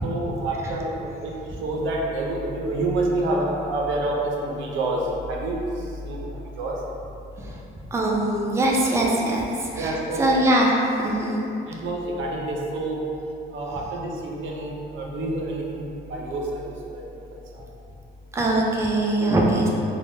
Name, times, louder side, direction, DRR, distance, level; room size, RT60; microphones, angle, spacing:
voice 1, 0.0-1.3 1.6-6.8 9.8-10.3 11.7-13.1 13.5-17.0 17.3-17.7, right 2 dB, 75° right, -2 dB, 0.5 m, -28 dB
voice 2, 7.9-11.5 18.3-19.7, right 1 dB, 15° right, -2 dB, 0.3 m, -22 dB
3.3 x 2.1 x 2.6 m, 2.8 s
cardioid pair, 90°, 20 cm